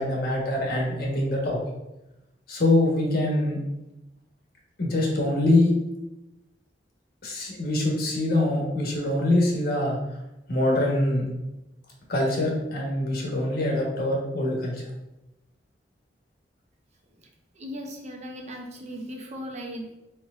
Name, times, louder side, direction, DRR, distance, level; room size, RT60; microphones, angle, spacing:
voice 1, 0.0-1.6 2.5-3.6 4.8-5.7 7.2-10.0 10.5-11.2 12.1-14.9, left 1 dB, 60° left, -2 dB, 1.2 m, -24 dB
voice 2, 17.5-19.9, equal, 40° right, 2 dB, 0.7 m, -37 dB
4.4 x 4.1 x 2.4 m, 0.93 s
head